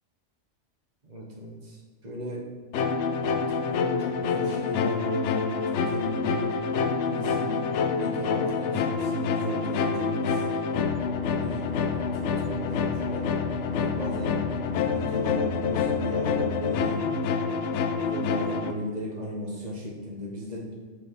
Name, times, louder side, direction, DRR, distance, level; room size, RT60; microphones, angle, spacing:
voice 1, 1.0-2.5 3.2-6.4 7.1-10.5 11.4-11.6 11.9-13.3 13.7-14.4 14.9-17.0 18.0-20.8, equal, 35° right, -2 dB, 1.4 m, -36 dB
sound 1, 2.7-18.7, left 5 dB, 75° left, 0.9 m, -27 dB
6.6 x 5.2 x 3.7 m, 1.5 s
omnidirectional pair, 1.2 m